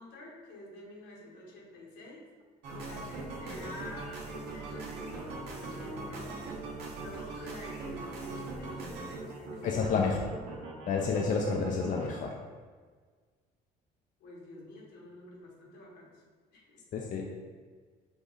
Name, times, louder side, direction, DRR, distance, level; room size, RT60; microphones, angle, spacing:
voice 1, 0.0-2.3 2.9-6.5 7.0-10.1 14.2-16.2 16.5-16.8, left 1 dB, 80° left, -3 dB, 1.4 m, -48 dB
sound 1, 2.6-12.1, right 3 dB, 80° right, 0.9 m, -41 dB
voice 2, 9.6-10.2 10.9-12.3 16.9-17.3, left 5 dB, 50° left, 1 dB, 0.5 m, -29 dB
5.1 x 2.4 x 4.0 m, 1.5 s
cardioid pair, 110°, 17 cm